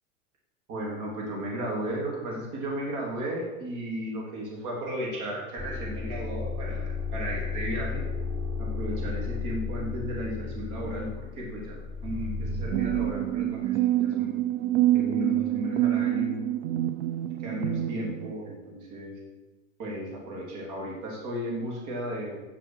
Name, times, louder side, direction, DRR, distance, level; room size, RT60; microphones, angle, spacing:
voice 1, 0.7-8.0 8.6-14.4 14.9-16.5 17.4-19.2 19.8-22.4, right 1 dB, 45° right, -2 dB, 3.5 m, -34 dB
sound 1, 5.6-13.1, left 4 dB, 10° right, 0.8 m, -33 dB
sound 2, 12.7-18.3, right 13 dB, 60° right, 0.6 m, -26 dB
9.1 x 7.8 x 6.4 m, 1.1 s
supercardioid pair, 125°, 43 cm